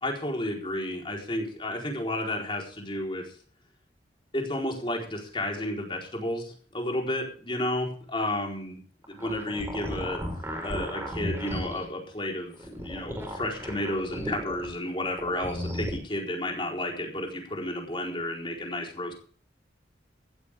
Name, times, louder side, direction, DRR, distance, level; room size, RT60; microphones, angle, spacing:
voice 1, 0.0-3.4 4.3-8.8 9.1-10.2 10.6-19.1, left 1 dB, 30° left, 0 dB, 4.3 m, -32 dB
sound 1, 9.0-11.8 12.5-14.7 15.1-15.9, equal, 15° right, 4.9 m, -34 dB
15.5 x 13.5 x 3.7 m, 0.43 s
head